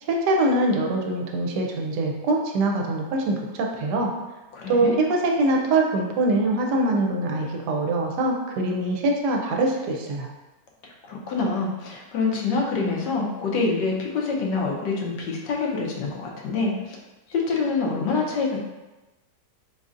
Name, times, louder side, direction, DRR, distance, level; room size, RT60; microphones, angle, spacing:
voice 1, 0.0-4.1 4.7-10.3, right 2 dB, 80° right, 1 dB, 1.2 m, -23 dB
voice 2, 4.5-4.9 11.1-16.7 17.3-18.6, left 4 dB, 85° left, -1 dB, 1.4 m, -26 dB
4.0 x 3.8 x 2.5 m, 1.1 s
omnidirectional pair, 1.8 m